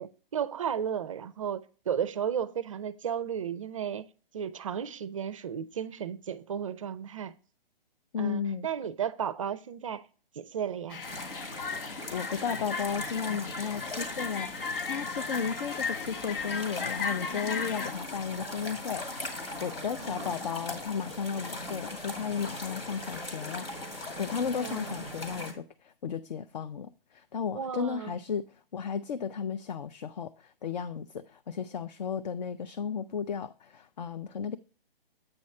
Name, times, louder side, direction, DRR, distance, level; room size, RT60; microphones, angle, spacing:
voice 1, 0.0-4.1 4.3-7.3 8.2-10.0 10.3-11.0 19.9-20.4 24.5-25.1 27.5-28.2, right 8 dB, 35° right, 0.4 m, -34 dB
voice 2, 8.1-8.7 12.1-28.5 28.7-34.6, left 6 dB, 50° left, 0.4 m, -34 dB
sound 1, 10.9-17.9, left 5 dB, 70° left, 0.8 m, -36 dB
sound 2, 11.0-25.5, left 1 dB, 85° left, 2.3 m, -39 dB
8.6 x 3.1 x 6.4 m
figure-of-eight pair, 135°, 29 cm